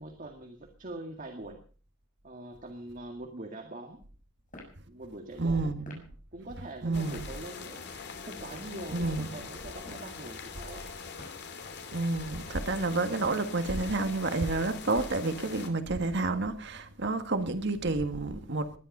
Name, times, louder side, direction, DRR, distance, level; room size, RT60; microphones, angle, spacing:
voice 1, 0.0-1.6 2.2-4.0 4.9-5.7 6.3-7.8 8.2-10.8, right 2 dB, 40° right, 1.9 m, -43 dB
sound 1, 4.5-4.8 5.8-6.1 7.1-7.3 8.4-8.8 9.7-10.1 11.2-11.5, left 2 dB, 40° left, 6.3 m, -48 dB
voice 2, 5.4-6.0 6.8-7.3 8.9-9.4 11.9-18.7, right 2 dB, 55° right, 1.6 m, -30 dB
sound 2, 6.9-15.7, left 5 dB, 55° left, 2.9 m, -43 dB
20.0 x 11.5 x 5.5 m
head